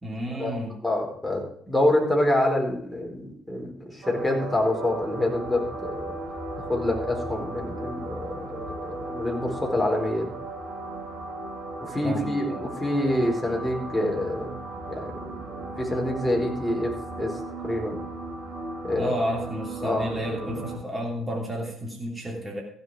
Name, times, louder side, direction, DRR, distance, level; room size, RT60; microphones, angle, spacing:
voice 1, 0.0-0.8 12.0-12.6 19.0-22.6, equal, 20° right, -2 dB, 3.0 m, -31 dB
voice 2, 0.8-6.1 6.6-10.3 11.8-14.6 14.9-18.0 18.8-19.1 19.8-20.2, left 1 dB, 5° left, -1 dB, 4.7 m, -27 dB
sound 1, 4.0-20.8, right 2 dB, 55° right, 2.5 m, -36 dB
15.0 x 7.0 x 5.0 m, 0.63 s
figure-of-eight pair, 45°, 0 cm